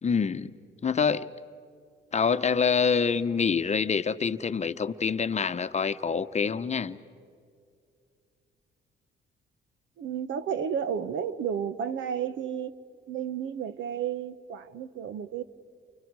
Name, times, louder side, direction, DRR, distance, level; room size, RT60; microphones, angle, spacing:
voice 1, 0.0-0.5 0.8-1.3 2.1-7.0, left 6 dB, 35° left, 0.9 m, -26 dB
voice 2, 10.0-12.7 13.1-15.4, right 8 dB, 70° right, 1.2 m, -32 dB
30.0 x 28.5 x 4.8 m
cardioid pair, 90°, 20 cm